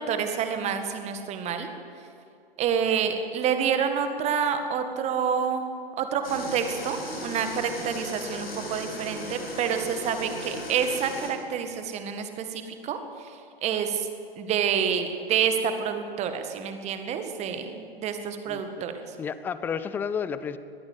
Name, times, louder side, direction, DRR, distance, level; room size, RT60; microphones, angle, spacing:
voice 1, 0.0-1.7 2.6-13.0 13.2-13.3 13.6-14.1 14.4-18.9, right 7 dB, 20° right, 7 dB, 1.8 m, -28 dB
sound 1, 6.2-11.3, left 1 dB, 75° left, 6.9 m, -37 dB
voice 2, 18.5-18.8 19.2-20.6, left 7 dB, 5° left, 14 dB, 0.4 m, -31 dB
21.5 x 14.5 x 8.3 m, 2.5 s
figure-of-eight pair, 110°, 30 cm